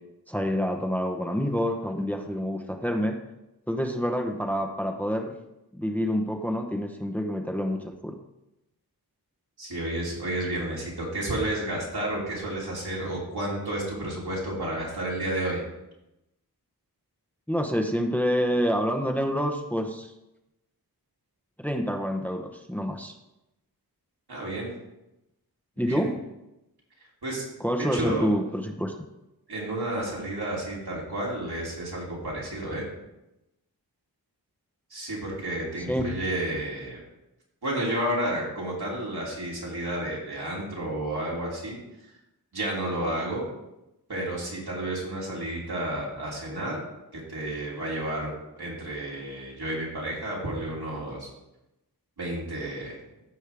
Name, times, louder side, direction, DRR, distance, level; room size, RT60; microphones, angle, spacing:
voice 1, 0.3-3.2 3.7-5.4 5.7-8.1 17.5-20.1 21.6-23.1 25.8-26.2 27.6-28.9 35.8-36.1, equal, 5° left, 3 dB, 0.9 m, -27 dB
voice 2, 9.6-15.6 24.3-24.7 25.9-26.1 27.2-27.4 27.8-28.3 29.5-32.8 34.9-37.0 37.6-41.8 42.5-43.4 44.1-46.8 47.1-51.3 52.2-53.0, right 1 dB, 75° right, -5 dB, 3.1 m, -31 dB
14.5 x 5.4 x 3.5 m, 0.92 s
wide cardioid pair, 65°, 38 cm